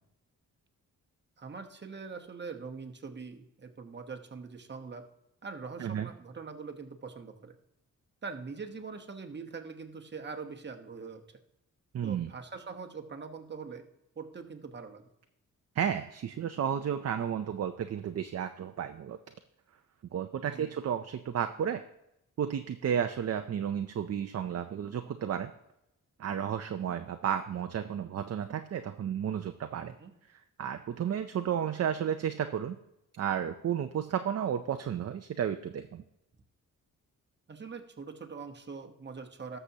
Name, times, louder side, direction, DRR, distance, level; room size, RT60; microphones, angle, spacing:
voice 1, 1.4-5.0 5.4-7.6 8.2-11.4 12.0-13.8 14.2-15.0 20.4-20.7 29.8-30.1 37.5-39.6, right 5 dB, 35° right, 4 dB, 1.1 m, -43 dB
voice 2, 11.9-12.3 15.8-19.2 20.1-21.8 22.4-25.5 26.2-29.9 30.3-32.8 33.2-36.0, right 8 dB, 50° right, 7 dB, 0.5 m, -32 dB
18.5 x 6.8 x 2.8 m, 0.85 s
wide cardioid pair, 140°, 33 cm